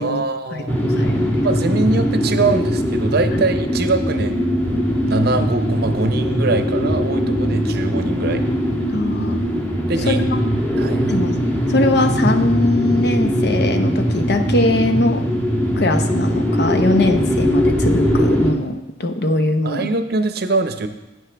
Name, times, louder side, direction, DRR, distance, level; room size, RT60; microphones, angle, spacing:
voice 1, 0.0-0.8 1.4-4.5 5.0-8.4 9.9-10.3 10.8-11.2 19.6-20.9, right 3 dB, 55° right, 8 dB, 0.7 m, -22 dB
voice 2, 0.5-1.4 8.9-9.5 10.1-10.4 11.1-11.4 11.7-15.3 15.7-19.9, left 1 dB, 55° left, 7 dB, 0.8 m, -21 dB
sound 1, 0.7-18.5, equal, 10° left, 1.5 m, -20 dB
11.0 x 9.1 x 3.4 m, 0.96 s
head